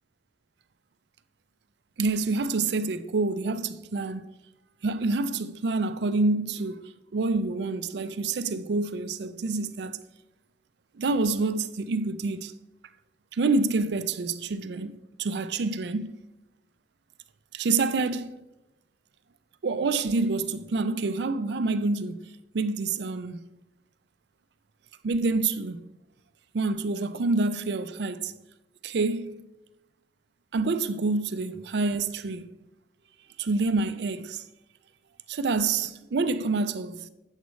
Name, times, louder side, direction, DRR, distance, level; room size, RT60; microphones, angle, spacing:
voice 1, 2.0-4.3 4.8-10.0 10.9-12.5 13.3-16.2 17.5-18.4 19.6-23.4 25.0-25.8 26.5-28.3 28.8-29.5 30.5-32.5 33.4-34.4 35.3-37.1, right 3 dB, 65° right, 0.4 m, -27 dB
9.2 x 7.2 x 3.1 m
head